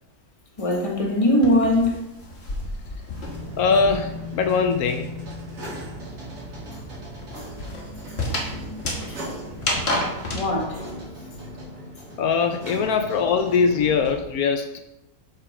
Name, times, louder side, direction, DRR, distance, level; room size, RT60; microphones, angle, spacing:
sound 1, 0.6-4.3 4.6-10.5, left 1 dB, 45° left, 1.6 m, -31 dB
voice 1, 0.6-2.0 9.1-9.2 10.3-10.8, left 1 dB, 25° left, 1.3 m, -21 dB
sound 2, 3.2-14.1, equal, 80° right, 2.5 m, -37 dB
voice 2, 3.6-5.1 12.2-14.8, left 5 dB, 75° left, 1.1 m, -22 dB
6.3 x 5.8 x 4.8 m
omnidirectional pair, 1.6 m